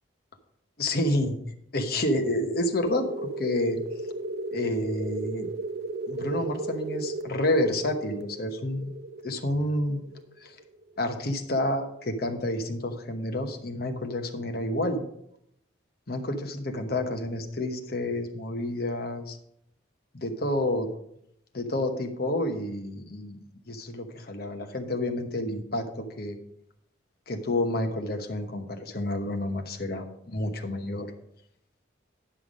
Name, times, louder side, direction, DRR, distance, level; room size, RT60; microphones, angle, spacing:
voice 1, 0.8-1.4 1.7-3.8 4.5-5.5 6.1-8.9 9.2-10.0 10.4-10.6 11.0-15.0 16.1-19.4 20.1-20.9 21.5-23.4 23.7-26.4 27.3-31.1, left 1 dB, 50° left, 5 dB, 1.0 m, -29 dB
sound 1, 2.9-11.2, right 2 dB, 55° right, 0.6 m, -36 dB
9.9 x 5.7 x 5.1 m, 0.75 s
head